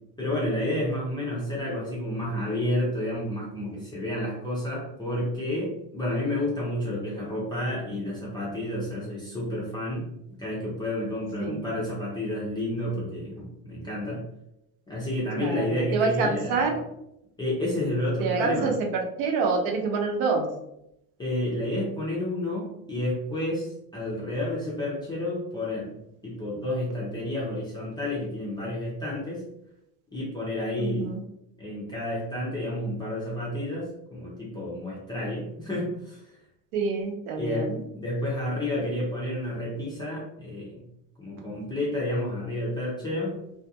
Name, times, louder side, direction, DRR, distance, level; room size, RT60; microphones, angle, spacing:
voice 1, 0.2-10.1 10.4-14.2 14.9-16.6 17.4-18.7 21.2-25.9 26.2-29.4 30.1-31.1 31.6-36.3 37.4-37.7 37.9-40.8 41.2-43.4, left 1 dB, 10° left, -7 dB, 0.4 m, -30 dB
voice 2, 15.3-16.8 18.2-20.5 30.8-31.2 36.7-37.8, right 4 dB, 65° right, 2 dB, 0.8 m, -27 dB
2.4 x 2.3 x 2.7 m, 0.82 s
supercardioid pair, 130°, 50 cm